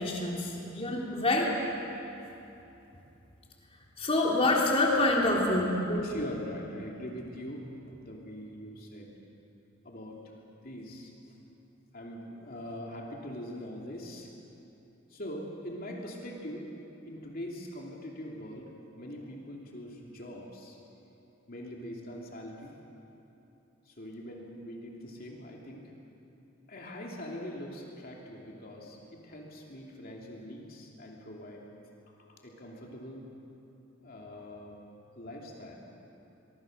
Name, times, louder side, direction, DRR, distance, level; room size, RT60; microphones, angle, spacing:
voice 1, 0.0-1.6 4.0-5.8, left 2 dB, 30° left, -2 dB, 3.5 m, -26 dB
voice 2, 5.9-9.1 9.8-10.2 10.6-11.1 11.9-14.3 15.1-16.7 17.1-18.7 19.0-20.8 21.5-22.7 23.8-25.9 26.7-31.6 32.1-33.2 34.0-34.8 35.1-35.7, equal, 45° left, -1 dB, 2.9 m, -42 dB
24.0 x 23.0 x 6.6 m, 2.9 s
head